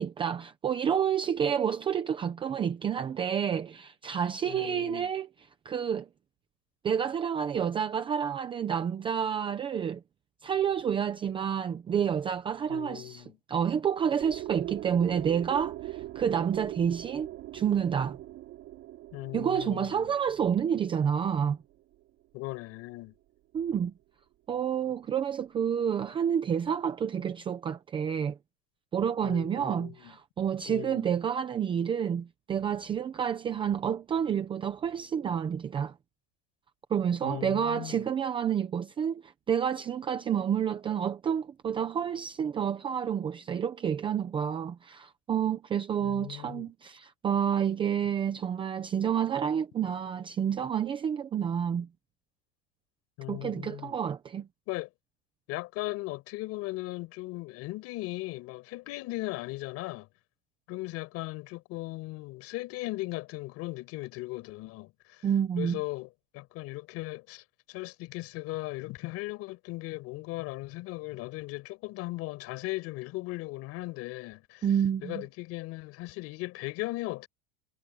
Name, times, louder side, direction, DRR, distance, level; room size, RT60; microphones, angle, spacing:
voice 1, 0.0-5.3 5.6-6.1 6.8-10.0 10.4-17.3 17.5-18.2 19.3-21.6 23.5-23.9 24.5-28.4 28.9-35.9 36.9-51.9 53.3-54.5 65.2-65.8 74.6-75.2, right 8 dB, 15° right, 0.7 m, -29 dB
voice 2, 4.4-5.1 12.7-13.4 19.1-20.1 22.3-23.1 29.2-30.1 30.7-31.1 37.2-38.1 46.0-46.7 53.2-54.0 54.7-54.9 55.5-60.1 60.7-65.3 65.6-66.1 66.3-74.7 75.0-77.3, left 20 dB, 40° left, 5.1 m, -38 dB
sound 1, 14.2-22.0, right 15 dB, 35° right, 5.9 m, -41 dB
supercardioid pair, 175°, 39 cm